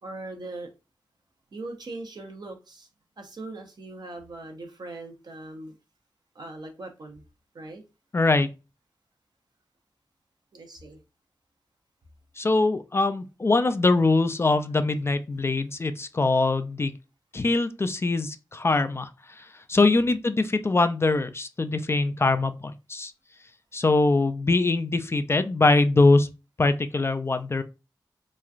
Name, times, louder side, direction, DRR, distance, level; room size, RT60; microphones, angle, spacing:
voice 1, 0.0-0.7 1.5-2.9 3.2-5.7 6.3-7.2 7.5-7.8 10.5-11.0 19.7-20.1, right 2 dB, 60° right, 0.8 m, -40 dB
voice 2, 8.1-8.5 12.4-16.9 17.3-19.1 19.4-23.1 23.7-26.3 26.6-27.6, left 3 dB, 35° left, 0.3 m, -23 dB
3.0 x 2.3 x 2.4 m
cardioid pair, 50°, 8 cm